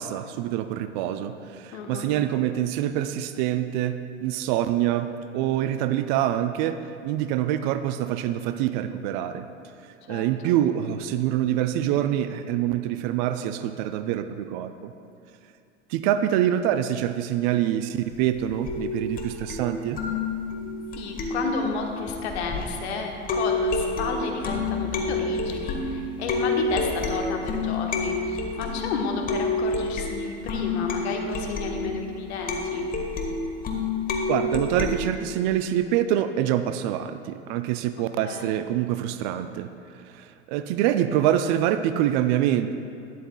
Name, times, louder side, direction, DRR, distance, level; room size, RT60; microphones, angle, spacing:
voice 1, 0.0-9.5 10.1-14.9 15.9-20.0 34.3-39.7 40.1-42.7, right 11 dB, 40° right, 10 dB, 0.4 m, -25 dB
voice 2, 1.7-2.1 10.1-10.5 21.0-32.9 38.2-38.6, left 4 dB, 60° left, 2 dB, 1.2 m, -31 dB
sound 1, 18.7-22.9 23.3-34.9, left 3 dB, 25° left, 1.1 m, -29 dB
12.0 x 10.0 x 2.3 m, 2.5 s
figure-of-eight pair, 85°, 36 cm